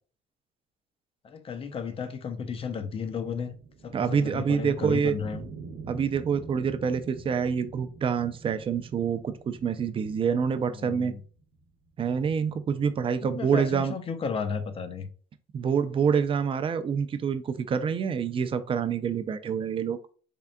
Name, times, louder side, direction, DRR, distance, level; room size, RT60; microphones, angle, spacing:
voice 1, 1.2-3.5 3.8-5.5 10.6-11.2 13.2-15.1, left 6 dB, 35° left, 0.5 m, -34 dB
sound 1, 2.9-12.5, right 4 dB, 70° right, 0.8 m, -46 dB
voice 2, 3.9-5.2 5.9-11.1 12.0-13.9 15.5-20.0, right 6 dB, 30° right, 0.4 m, -27 dB
3.6 x 3.4 x 2.2 m
cardioid pair, 110°, 17 cm